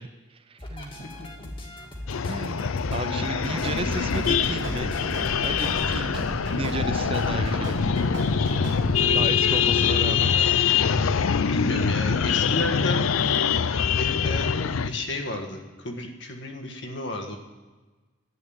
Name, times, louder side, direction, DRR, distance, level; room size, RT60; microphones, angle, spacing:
voice 1, 0.0-1.0 2.3-5.0 5.4-6.2 6.5-8.0 9.1-10.4, right 3 dB, 25° right, 11 dB, 0.4 m, -34 dB
sound 1, 0.6-6.1, left 1 dB, 25° left, 1.8 m, -40 dB
voice 2, 1.0-1.5 8.9-10.1 11.5-13.1 13.9-17.4, left 2 dB, 55° left, 2 dB, 1.6 m, -33 dB
sound 2, 2.1-14.9, left 6 dB, 80° left, 0.5 m, -24 dB
sound 3, 3.4-9.1, equal, 60° right, 2.0 m, -33 dB
11.0 x 8.7 x 8.6 m, 1.3 s
head